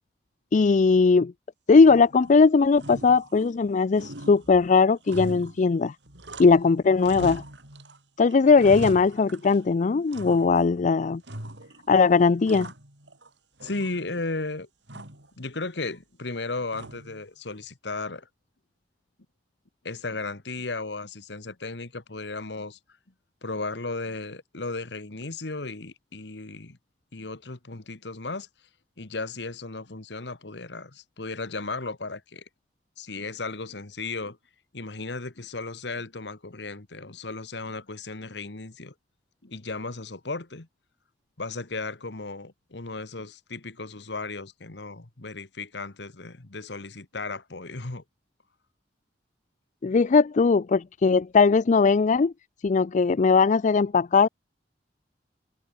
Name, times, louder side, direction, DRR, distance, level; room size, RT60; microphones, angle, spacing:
voice 1, 0.5-1.3 1.7-5.9 6.4-7.4 8.2-11.2 11.9-12.7 49.8-52.3 52.6-54.3, left 4 dB, 45° left, 0.4 m, -19 dB
sound 1, 1.8-2.4 2.7-3.7 4.0-6.7 7.0-8.0 8.3-9.7 10.1-10.8 11.2-11.9 12.2-13.3 13.6-14.3 14.9-15.3 16.7-17.2, right 1 dB, 85° right, 7.4 m, -40 dB
voice 2, 13.6-14.7 14.9-15.0 15.4-18.3 19.8-22.8 23.4-26.8 27.1-28.5 29.0-32.4 33.0-34.4 34.7-38.9 39.4-40.7 41.4-48.0, left 3 dB, 70° left, 1.6 m, -35 dB
head